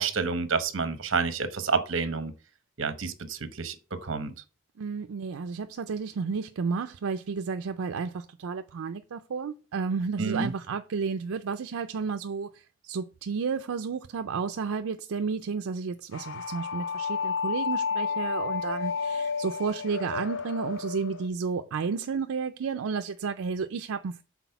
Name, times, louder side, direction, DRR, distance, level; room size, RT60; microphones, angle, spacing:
voice 1, 0.0-2.3 2.8-4.3 10.2-10.5, right 4 dB, 65° right, 0.9 m, -29 dB
voice 2, 4.8-24.2, right 5 dB, 85° right, 0.4 m, -32 dB
sound 1, 16.1-21.3, left 5 dB, 65° left, 0.7 m, -31 dB
6.1 x 4.1 x 5.7 m
head